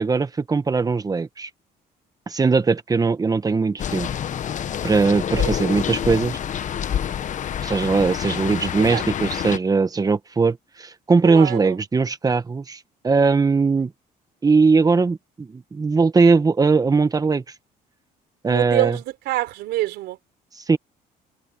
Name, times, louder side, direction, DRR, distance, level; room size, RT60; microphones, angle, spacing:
voice 1, 0.0-1.5 2.3-4.1 4.8-6.4 7.6-12.8 13.0-13.9 14.4-17.4 18.4-18.9 20.7-20.8, right 4 dB, 20° right, 1.2 m, -20 dB
sound 1, 3.8-9.6, left 9 dB, 50° left, 1.2 m, -27 dB
voice 2, 11.2-11.8 18.4-20.2, right 16 dB, 85° right, 4.0 m, -26 dB
cardioid pair, 110°, 17 cm